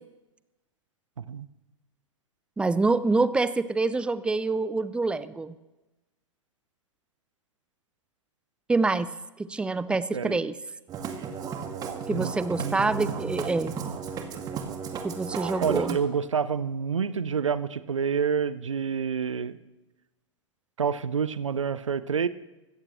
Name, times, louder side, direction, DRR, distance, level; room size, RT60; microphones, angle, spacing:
voice 1, 2.6-5.5 8.7-9.1 9.4-10.5 12.1-13.7 15.0-16.0, right 3 dB, 5° right, 15 dB, 0.5 m, -26 dB
Musical instrument, 10.9-15.9, right 6 dB, 25° right, 1.6 m, -35 dB
voice 2, 12.6-13.5 13.8-14.0 15.6-19.6 20.8-22.3, right 6 dB, 70° right, 16 dB, 0.8 m, -28 dB
24.5 x 13.5 x 3.1 m, 1.1 s
figure-of-eight pair, 100°, 16 cm